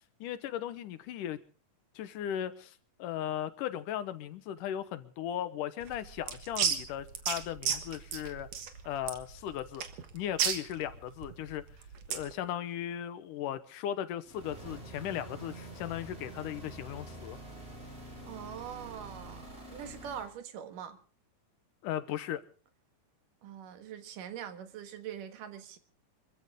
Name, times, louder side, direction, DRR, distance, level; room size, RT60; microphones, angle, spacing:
voice 1, 0.2-1.4 2.0-2.7 3.0-8.5 8.9-9.8 10.1-11.6 12.1-17.4 21.8-22.4, left 10 dB, 75° left, 2.5 m, -37 dB
sound 1, 5.8-12.3, right 8 dB, 55° right, 2.4 m, -34 dB
sound 2, 14.2-20.3, right 1 dB, 15° right, 4.7 m, -46 dB
voice 2, 18.3-21.0 23.4-25.8, right 9 dB, 75° right, 3.0 m, -43 dB
26.5 x 15.0 x 3.6 m
omnidirectional pair, 3.8 m